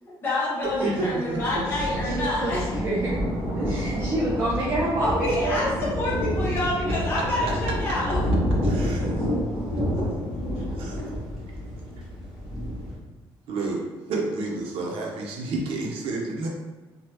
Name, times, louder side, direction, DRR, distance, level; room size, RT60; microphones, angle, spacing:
voice 1, 0.0-2.8 5.0-8.2 8.7-8.8, left 1 dB, 25° left, -8 dB, 0.8 m, -27 dB
Thunder, 0.6-12.9, equal, 5° right, 0.9 m, -28 dB
voice 2, 0.8-1.4 8.6-9.2 10.8-11.1 13.5-16.5, right 3 dB, 80° right, 0 dB, 0.7 m, -30 dB
voice 3, 1.7-3.3 3.5-5.6, right 2 dB, 25° right, -6 dB, 0.4 m, -28 dB
3.4 x 2.3 x 2.9 m, 1.2 s
cardioid pair, 175°, 9 cm